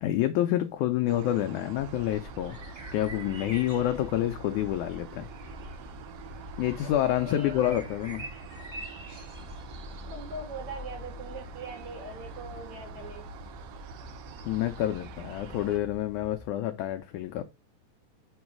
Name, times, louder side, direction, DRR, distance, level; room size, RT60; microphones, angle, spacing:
voice 1, 0.0-2.6 2.9-5.3 6.6-8.3 14.4-17.4, left 13 dB, 85° left, 1.7 m, -28 dB
sound 1, 1.1-15.8, right 9 dB, 80° right, 1.6 m, -46 dB
sound 2, 1.8-16.5, left 1 dB, 25° right, 0.9 m, -45 dB
voice 2, 7.0-7.8 10.1-13.3, right 2 dB, 55° right, 2.7 m, -41 dB
6.9 x 3.2 x 5.9 m
omnidirectional pair, 4.1 m